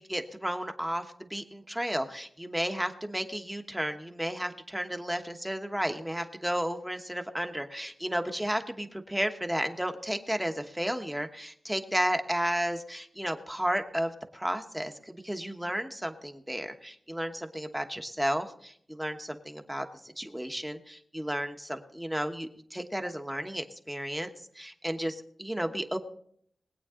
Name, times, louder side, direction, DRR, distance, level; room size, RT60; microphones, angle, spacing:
voice 1, 0.0-19.9 20.2-24.3 24.5-26.0, equal, 5° right, 6 dB, 1.2 m, -33 dB
21.5 x 8.8 x 3.8 m, 0.65 s
wide cardioid pair, 105°, 0 cm